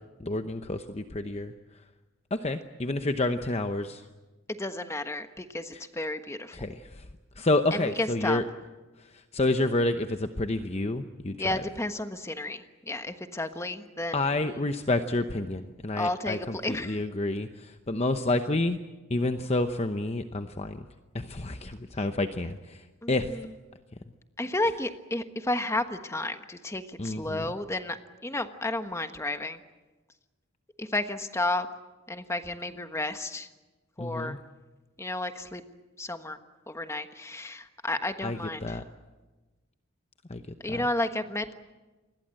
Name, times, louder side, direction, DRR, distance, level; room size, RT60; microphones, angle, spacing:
voice 1, 0.2-1.5 2.3-4.0 6.5-7.0 7.4-8.4 9.1-11.6 14.1-18.8 19.1-20.8 21.1-22.8 23.1-23.3 27.0-27.5 34.0-34.4 38.2-38.8 40.3-40.4 40.7-40.8, left 2 dB, 30° left, 8 dB, 0.9 m, -29 dB
voice 2, 4.5-6.6 7.7-8.4 11.4-14.6 16.0-17.0 23.0-23.5 24.4-28.0 28.2-29.6 30.8-31.7 32.1-33.5 34.0-34.4 35.0-35.6 36.0-36.4 36.7-38.8 40.6-41.5, left 2 dB, 15° left, 8 dB, 1.3 m, -32 dB
28.0 x 21.5 x 7.8 m, 1.2 s
head